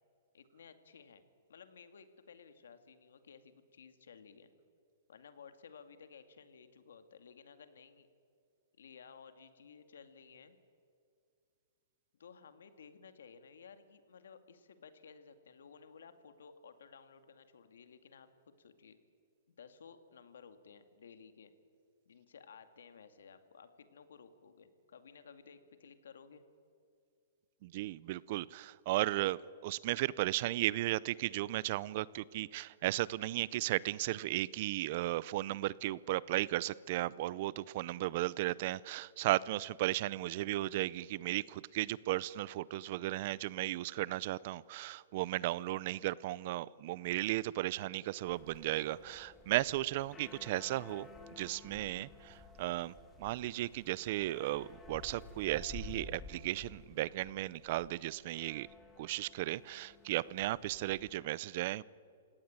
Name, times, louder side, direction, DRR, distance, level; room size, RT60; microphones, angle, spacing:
voice 1, 0.3-1.2 1.5-4.5 5.1-8.1 8.8-10.6 12.2-19.0 19.5-21.5 22.1-26.4 42.8-42.9, left 6 dB, 85° left, 9 dB, 2.2 m, -56 dB
voice 2, 27.6-51.1 51.4-58.7 59.0-61.8, right 16 dB, 45° right, 22 dB, 0.5 m, -35 dB
sound 1, 48.2-61.2, left 3 dB, 10° left, 2.4 m, -53 dB
27.5 x 17.5 x 8.9 m, 2.3 s
hypercardioid pair, 160°, 0 cm